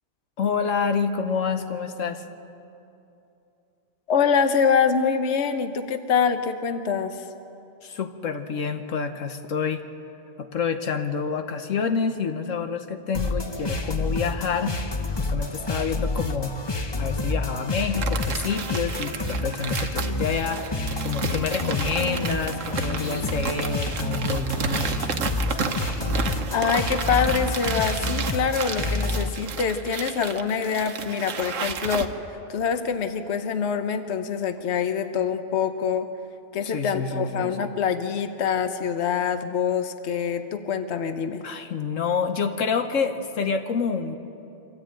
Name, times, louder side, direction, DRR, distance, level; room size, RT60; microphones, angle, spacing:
voice 1, 0.4-2.2 7.8-9.8 10.4-14.8 15.1-16.6 17.0-20.6 21.0-24.9 36.6-37.7 41.4-44.2, left 5 dB, 80° left, 7 dB, 1.4 m, -28 dB
voice 2, 4.1-7.3 26.5-36.1 36.5-41.4, left 6 dB, 60° left, 8 dB, 1.2 m, -25 dB
sound 1, 13.1-29.3, left 2 dB, 25° left, 0.7 m, -29 dB
sound 2, 18.0-32.1, right 5 dB, 80° right, 1.4 m, -32 dB
25.0 x 13.5 x 8.9 m, 2.8 s
omnidirectional pair, 1.3 m